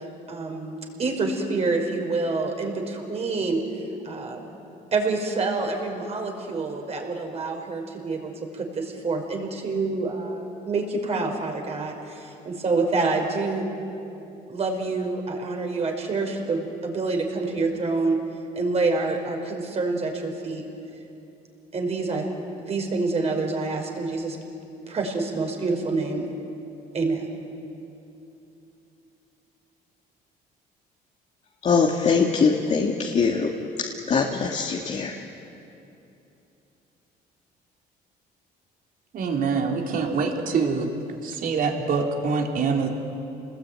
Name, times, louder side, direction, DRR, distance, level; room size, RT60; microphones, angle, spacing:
voice 1, 0.3-3.6 4.0-4.5 4.9-13.7 14.5-18.2 18.5-20.6 21.7-22.3 22.6-24.4 24.9-26.3 26.9-27.3, right 3 dB, 40° right, 2 dB, 5.3 m, -27 dB
voice 2, 31.6-33.5 33.8-35.1, left 5 dB, 40° left, 0 dB, 2.2 m, -22 dB
voice 3, 39.1-40.9 41.2-42.9, right 5 dB, 55° right, 2 dB, 3.7 m, -25 dB
29.0 x 20.5 x 9.4 m, 2.8 s
cardioid pair, 110°, 17 cm